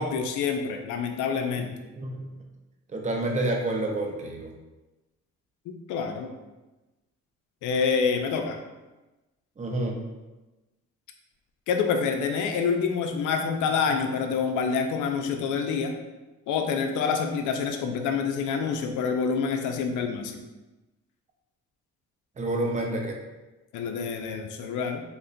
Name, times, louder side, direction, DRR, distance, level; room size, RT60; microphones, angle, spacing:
voice 1, 0.0-1.7 5.7-6.3 7.6-8.6 11.7-16.0 16.5-20.4 23.7-25.0, left 5 dB, 80° left, 4 dB, 0.5 m, -27 dB
voice 2, 2.0-2.3 2.9-4.5 9.6-10.0 22.4-23.2, right 2 dB, 25° right, 1 dB, 0.6 m, -28 dB
3.2 x 2.2 x 3.8 m, 1.1 s
cardioid pair, 90°, 30 cm